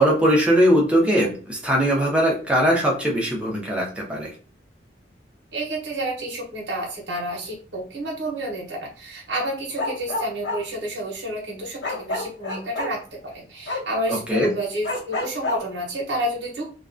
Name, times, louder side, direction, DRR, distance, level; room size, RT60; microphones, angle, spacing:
voice 1, 0.0-4.3 14.1-14.5, equal, 5° right, -2 dB, 0.6 m, -20 dB
voice 2, 5.5-16.7, right 1 dB, 85° right, -1 dB, 0.8 m, -29 dB
Bark, 9.7-10.6 11.8-12.9 13.7-13.8 14.8-15.6, left 2 dB, 75° left, 0.9 m, -27 dB
2.3 x 2.2 x 2.4 m, 0.40 s
head